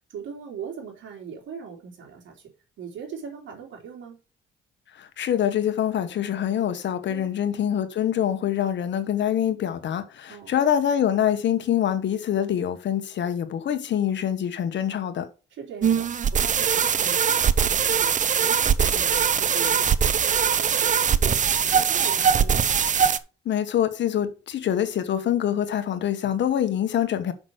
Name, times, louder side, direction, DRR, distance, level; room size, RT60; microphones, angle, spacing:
voice 1, 0.1-2.5 2.8-4.2 7.1-7.3 10.3-10.6 15.5-22.6, right 7 dB, 70° right, 3.6 m, -40 dB
voice 2, 4.9-15.3 23.4-27.3, left 10 dB, 65° left, 1.3 m, -25 dB
sound 1, 15.8-23.2, right 7 dB, 40° right, 0.7 m, -21 dB
6.3 x 6.0 x 6.4 m
cardioid pair, 90°, 20 cm